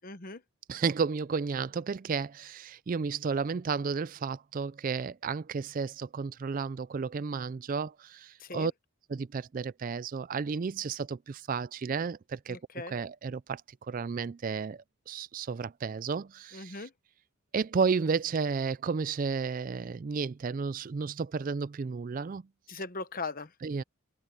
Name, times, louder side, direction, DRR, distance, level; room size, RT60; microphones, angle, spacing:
voice 1, 0.0-0.4 8.4-8.7 12.5-12.9 16.5-16.9 22.7-23.5, left 3 dB, 40° left, 1.1 m, -39 dB
voice 2, 0.7-8.7 9.1-13.6 13.9-16.9 17.5-22.4 23.6-23.8, right 5 dB, 40° right, 0.3 m, -32 dB
head